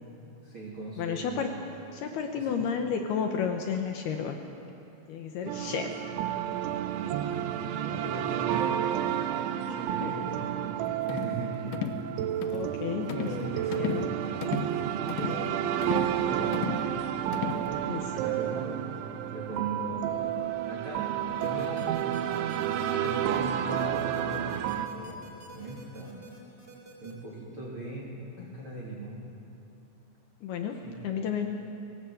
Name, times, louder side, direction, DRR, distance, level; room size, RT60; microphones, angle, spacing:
voice 1, 0.4-1.5 2.4-2.7 7.0-8.9 9.8-11.8 12.4-12.5 13.0-14.0 14.3-16.9 18.0-18.8 19.3-20.3 20.7-25.2 25.5-26.2 27.0-28.1 28.4-29.2 30.8-31.0, right 2 dB, 30° right, -6 dB, 3.4 m, -40 dB
voice 2, 1.0-1.5 1.9-4.4 5.1-5.9 9.7-10.1 12.2-13.1 13.8-14.1 17.9-18.2 28.4-28.6 30.4-30.8 31.0-31.5, left 7 dB, 70° left, 4 dB, 2.6 m, -32 dB
sound 1, 5.5-24.9, right 10 dB, 80° right, 3.1 m, -31 dB
sound 2, 11.1-11.4 11.7-12.0 12.4-12.7 13.1-13.4 13.7-14.1 14.4-14.7 15.1-15.4 15.8-16.1 16.5-16.9 17.3-17.7, left 8 dB, 85° left, 1.9 m, -34 dB
sound 3, 21.4-27.1, right 2 dB, 10° right, 5.3 m, -50 dB
24.0 x 18.5 x 8.0 m, 2.8 s
omnidirectional pair, 5.6 m